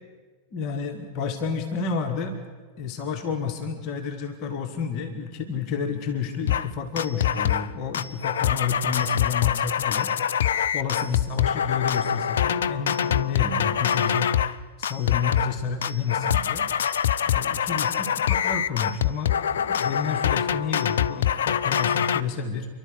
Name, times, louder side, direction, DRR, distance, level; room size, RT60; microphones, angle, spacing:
voice 1, 0.5-2.4 2.8-10.1 10.7-14.3 14.8-16.7 17.3-22.7, left 6 dB, 40° left, 4 dB, 2.0 m, -30 dB
sound 1, 6.5-6.7 7.0-7.7 7.9-14.6 14.8-15.6 15.8-22.2, left 9 dB, 60° left, 0.5 m, -24 dB
30.0 x 12.0 x 8.4 m, 1.4 s
figure-of-eight pair, 90°, 0 cm